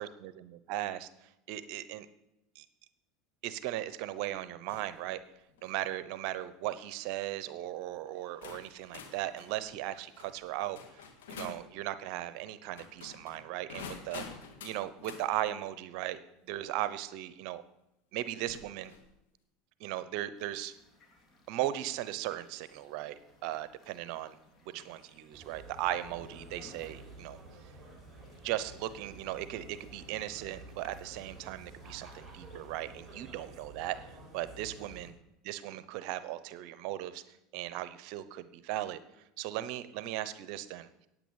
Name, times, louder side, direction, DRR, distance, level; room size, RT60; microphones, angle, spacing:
voice 1, 0.0-2.1 2.5-2.6 3.4-5.2 5.6-14.2 14.6-16.2 16.4-17.6 18.1-18.9 19.8-20.7 21.5-24.4 24.7-27.4 28.4-35.1 35.4-39.0 39.4-41.1, right 13 dB, 65° right, 14 dB, 0.8 m, -37 dB
sound 1, 4.7-5.0 5.5-5.8 6.7-7.0 7.8-7.9 8.4-11.7 12.7-15.3 17.0-17.1 18.4-19.1, left 6 dB, 90° left, 1.7 m, -48 dB
sound 2, 20.4-33.1, left 1 dB, 30° left, 2.8 m, -62 dB
sound 3, 25.3-35.1, right 2 dB, 10° right, 4.7 m, -51 dB
9.1 x 8.7 x 8.7 m, 0.87 s
supercardioid pair, 105°, 0 cm